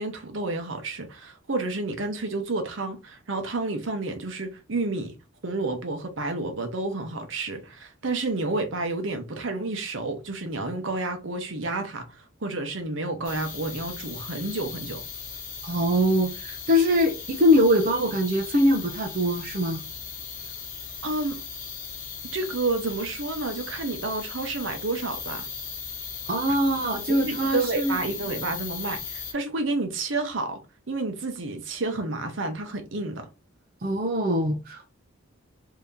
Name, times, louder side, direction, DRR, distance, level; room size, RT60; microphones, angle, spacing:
voice 1, 0.0-5.1 5.4-15.0 21.0-21.4 22.3-25.5 27.1-33.3, right 2 dB, 65° right, 0.9 m, -30 dB
sound 1, 13.2-29.3, left 6 dB, 40° left, 1.0 m, -37 dB
voice 2, 15.6-19.8 26.3-28.0 33.8-34.9, equal, 40° right, 0.5 m, -23 dB
2.8 x 2.8 x 3.5 m
head